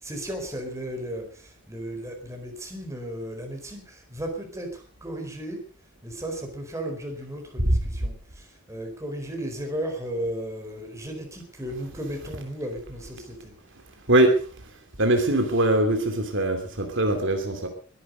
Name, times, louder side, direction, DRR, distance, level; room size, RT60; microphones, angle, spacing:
voice 1, 0.0-5.6 6.0-13.5, right 1 dB, 15° right, 4 dB, 4.5 m, -35 dB
voice 2, 15.0-17.7, right 1 dB, 55° right, 4 dB, 3.0 m, -22 dB
22.0 x 11.0 x 5.3 m, 0.42 s
head